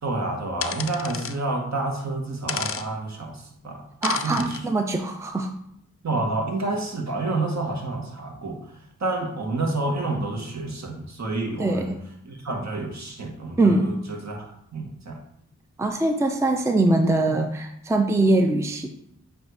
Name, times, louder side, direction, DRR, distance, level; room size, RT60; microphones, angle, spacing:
voice 1, 0.0-3.8 4.2-4.6 6.0-8.7 9.0-11.9 12.2-15.2, right 2 dB, 55° right, 1 dB, 1.5 m, -29 dB
sound 1, 0.6-1.4 2.5-2.9 4.0-4.6, left 6 dB, 45° left, 0.5 m, -31 dB
voice 2, 4.0-5.5 11.6-12.0 13.6-14.0 15.8-19.0, right 2 dB, 10° right, 5 dB, 0.6 m, -22 dB
7.7 x 2.6 x 4.7 m, 0.74 s
cardioid pair, 55°, 33 cm